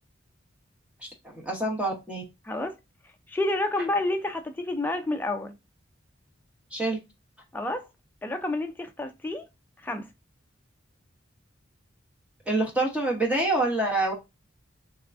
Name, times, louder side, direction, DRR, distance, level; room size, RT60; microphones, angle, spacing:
voice 1, 1.3-2.2 6.7-7.0 12.5-14.1, right 2 dB, 5° right, 0.9 m, -26 dB
voice 2, 2.4-2.8 3.3-5.6 7.5-7.8 8.2-9.5 9.8-10.1, left 2 dB, 10° left, 0.4 m, -29 dB
3.6 x 3.2 x 2.5 m
head